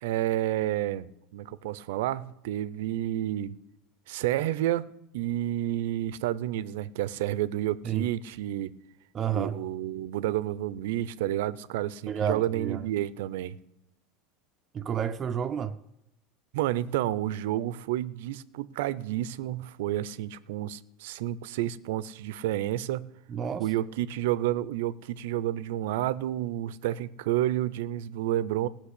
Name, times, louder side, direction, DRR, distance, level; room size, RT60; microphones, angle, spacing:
voice 1, 0.0-3.6 4.1-8.7 9.3-13.6 16.5-23.1 23.6-28.7, right 13 dB, 80° right, 0.5 m, -30 dB
voice 2, 9.1-9.6 12.1-12.9 14.7-15.8 23.3-23.7, right 8 dB, 30° right, 0.5 m, -30 dB
16.5 x 6.0 x 8.3 m
supercardioid pair, 140°, 0 cm